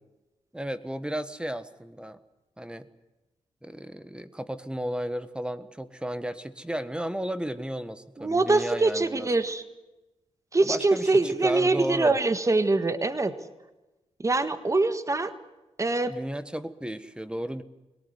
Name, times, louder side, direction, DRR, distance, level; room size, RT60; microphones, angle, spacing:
voice 1, 0.5-2.2 2.6-2.9 3.6-9.3 10.6-12.2 16.1-17.6, equal, 10° right, 12 dB, 1.4 m, -34 dB
voice 2, 8.2-9.6 10.5-13.3 14.2-15.3 15.8-16.1, right 3 dB, 25° right, 11 dB, 1.6 m, -24 dB
22.0 x 18.0 x 9.6 m, 1.0 s
cardioid pair, 75°, 12 cm